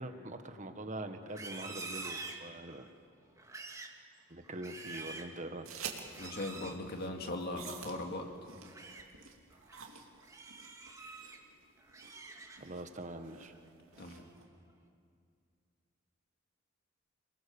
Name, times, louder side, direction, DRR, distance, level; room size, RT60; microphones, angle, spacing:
voice 1, 0.0-2.9 4.3-5.7 12.6-13.5, right 1 dB, 35° right, 7 dB, 1.4 m, -43 dB
Livestock farm animals working animals, 1.2-2.9 3.4-4.0 4.4-5.4 6.1-6.8 8.5-9.1 9.5-9.8 10.2-11.4 11.8-12.8 13.2-13.6 14.0-14.4, right 3 dB, 15° right, 1.7 m, -47 dB
sound 1, 5.6-14.4, right 6 dB, 85° right, 2.6 m, -50 dB
voice 2, 6.2-8.3 14.0-14.2, left 2 dB, 50° left, 3 dB, 2.2 m, -39 dB
29.0 x 19.5 x 7.1 m, 2.3 s
head